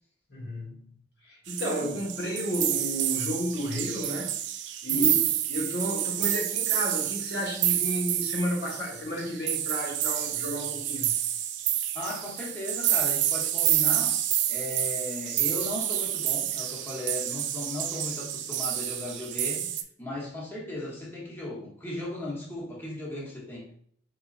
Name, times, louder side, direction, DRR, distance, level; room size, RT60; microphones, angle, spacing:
voice 1, 0.3-0.8 1.2-4.4 4.8-5.1 5.5-11.1, equal, 65° left, 1.3 m, -32 dB
sound 1, 1.5-19.8, right 11 dB, 80° right, 0.4 m, -29 dB
voice 2, 4.9-5.2 11.9-14.2 14.5-23.7, left 2 dB, 10° left, 1.0 m, -37 dB
4.2 x 3.8 x 2.4 m
head